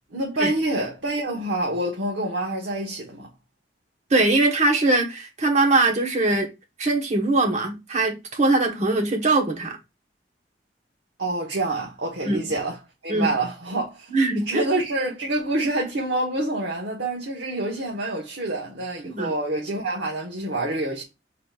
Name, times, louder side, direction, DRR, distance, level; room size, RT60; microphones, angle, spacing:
voice 1, 0.1-3.3 11.2-12.8 13.0-14.1 14.5-21.0, right 2 dB, 75° right, 1.1 m, -27 dB
voice 2, 4.1-6.5 6.8-9.8 12.2-12.4 13.1-13.3 14.1-14.7 19.1-19.3, right 2 dB, 40° right, 1.2 m, -21 dB
5.0 x 4.0 x 2.4 m
head